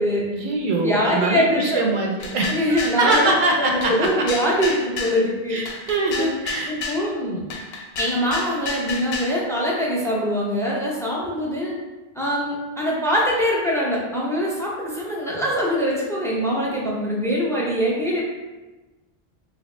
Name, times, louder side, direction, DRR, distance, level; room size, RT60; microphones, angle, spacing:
voice 1, 0.3-3.9 5.5-6.7, right 2 dB, 60° right, 0 dB, 0.6 m, -23 dB
voice 2, 0.8-1.8 2.5-3.3 3.6-6.3 6.7-7.4 8.0-11.7 12.2-18.2, equal, 5° left, -4 dB, 0.4 m, -23 dB
sound 1, 2.2-3.3 3.8-5.2 5.7-7.0 7.5-9.3, left 4 dB, 85° left, 0.8 m, -30 dB
2.8 x 2.8 x 3.2 m, 1.2 s
omnidirectional pair, 1.0 m